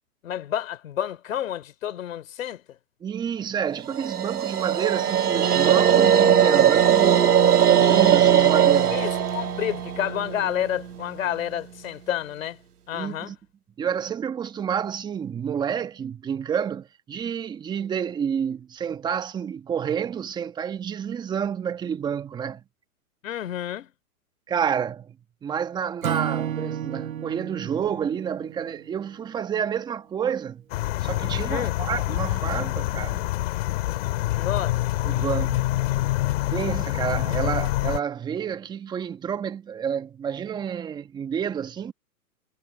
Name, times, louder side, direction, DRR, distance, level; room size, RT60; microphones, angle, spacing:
voice 1, 0.2-2.8 8.9-12.6 12.9-13.3 23.2-23.9 31.5-31.7 34.3-34.8 35.1-35.2, left 11 dB, 60° left, 3.4 m, -30 dB
voice 2, 3.0-7.3 7.6-9.0 12.9-13.4 13.8-22.6 24.5-25.2 25.4-30.6 31.0-33.3 35.0-35.7 36.5-41.9, right 8 dB, 10° right, 1.2 m, -29 dB
sound 1, 3.9-11.1, right 9 dB, 85° right, 1.5 m, -19 dB
Acoustic guitar / Strum, 26.0-29.3, right 10 dB, 65° right, 1.5 m, -32 dB
sound 2, 30.7-38.0, left 17 dB, 40° left, 2.4 m, -26 dB
hypercardioid pair, 145°, 45 cm